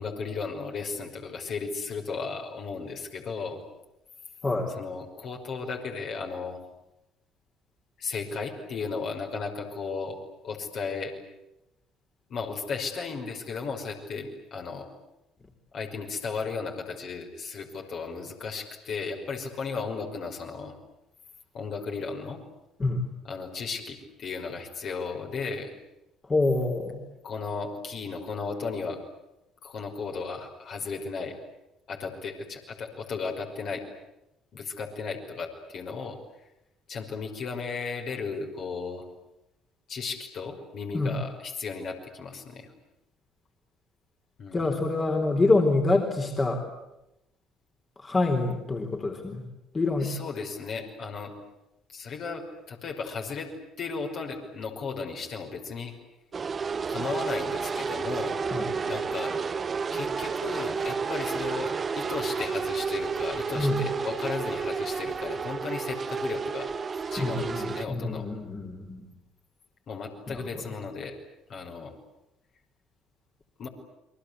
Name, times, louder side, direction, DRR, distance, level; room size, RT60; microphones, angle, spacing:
voice 1, 0.0-3.6 4.7-6.6 8.0-10.2 10.4-11.1 12.3-14.9 15.7-20.8 21.5-22.4 23.2-25.7 27.2-29.0 29.6-31.4 31.9-33.9 34.5-36.2 36.9-39.1 39.9-42.7 44.4-44.8 50.0-51.3 51.9-53.5 53.8-55.9 56.9-58.4 58.9-59.4 59.9-66.7 67.1-68.3 69.9-71.2 71.5-71.9 73.6-73.7, left 4 dB, 55° left, 1 dB, 5.6 m, -35 dB
voice 2, 26.3-27.0 40.9-41.1 44.5-46.6 48.0-49.4 49.7-50.1 58.5-58.7 63.6-63.8 67.2-69.1 70.3-70.4, left 2 dB, 30° left, 2 dB, 3.9 m, -26 dB
sound 1, 56.3-67.9, right 5 dB, 35° right, 1.2 m, -31 dB
29.5 x 23.0 x 8.4 m, 0.90 s
hypercardioid pair, 55°, 0 cm